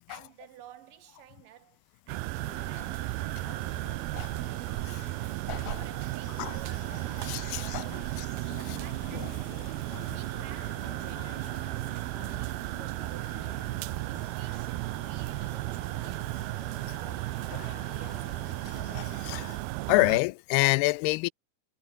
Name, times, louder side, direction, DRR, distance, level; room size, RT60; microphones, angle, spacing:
voice 1, 0.1-5.4 5.7-9.6 10.0-13.8 14.1-16.5 17.0-18.8, right 12 dB, 65° right, 2.5 m, -54 dB
sound 1, 2.1-20.2, right 21 dB, 80° right, 2.3 m, -34 dB
sound 2, 2.3-19.6, left 6 dB, 35° left, 1.7 m, -49 dB
voice 2, 5.5-5.8 6.4-6.5 7.2-7.8 8.2-8.6 9.1-9.3 9.9-10.2 16.9-17.0 18.9-19.6 19.9-21.3, left 23 dB, 90° left, 2.6 m, -28 dB
omnidirectional pair, 4.5 m